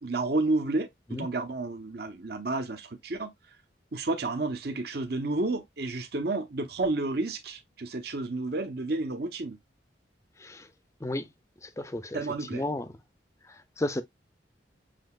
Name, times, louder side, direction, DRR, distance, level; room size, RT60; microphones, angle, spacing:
voice 1, 0.0-3.3 3.9-9.6 12.1-12.6, right 2 dB, 55° right, 0.9 m, -31 dB
voice 2, 11.6-12.2 12.5-13.0 13.5-14.0, left 1 dB, 15° left, 0.5 m, -33 dB
7.6 x 2.8 x 2.4 m
head